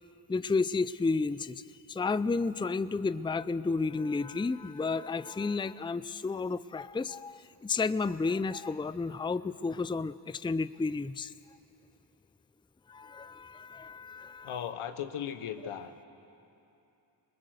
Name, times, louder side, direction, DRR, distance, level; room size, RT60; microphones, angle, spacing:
voice 1, 0.3-1.6 1.9-11.3 12.9-14.5, left 4 dB, 10° left, 15 dB, 0.5 m, -32 dB
voice 2, 14.4-16.0, left 9 dB, 80° left, 10 dB, 1.3 m, -37 dB
24.5 x 21.0 x 6.5 m, 2.8 s
supercardioid pair, 50°, 50 cm